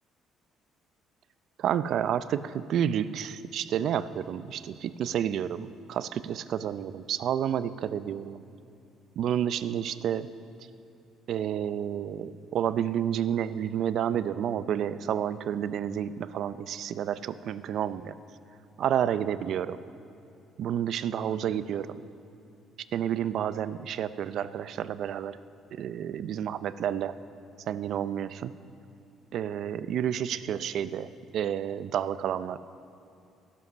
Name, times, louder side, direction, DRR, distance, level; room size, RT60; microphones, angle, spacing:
voice 1, 1.6-8.4 9.2-10.3 11.3-18.2 18.8-19.8 20.6-22.0 22.9-25.4 25.7-27.2 27.7-28.5 29.3-32.6, right 9 dB, 60° right, 15 dB, 0.4 m, -30 dB
13.5 x 11.5 x 6.2 m, 2.7 s
cardioid pair, 125°, 0 cm